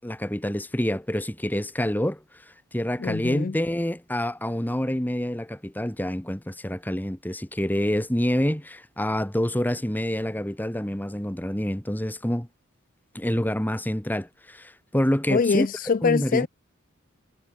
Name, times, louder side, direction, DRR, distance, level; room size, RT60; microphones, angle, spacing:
voice 1, 0.0-2.2 2.7-12.5 13.1-15.7 16.0-16.5, equal, 10° left, 1.3 m, -27 dB
voice 2, 3.0-3.6 15.3-16.5, left 5 dB, 40° left, 0.4 m, -24 dB
head